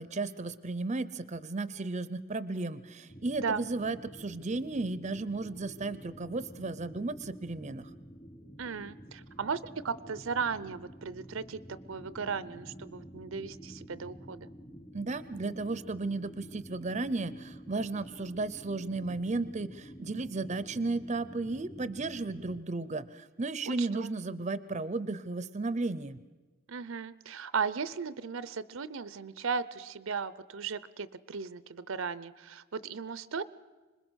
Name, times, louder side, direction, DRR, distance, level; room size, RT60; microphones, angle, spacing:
voice 1, 0.0-7.9 14.9-26.2, right 3 dB, 35° right, 15 dB, 0.6 m, -34 dB
sound 1, 3.1-22.6, equal, 25° left, 1.3 m, -49 dB
voice 2, 8.6-14.5 23.7-24.1 26.7-33.4, right 5 dB, 70° right, 17 dB, 0.6 m, -36 dB
26.0 x 21.0 x 6.3 m, 1.2 s
head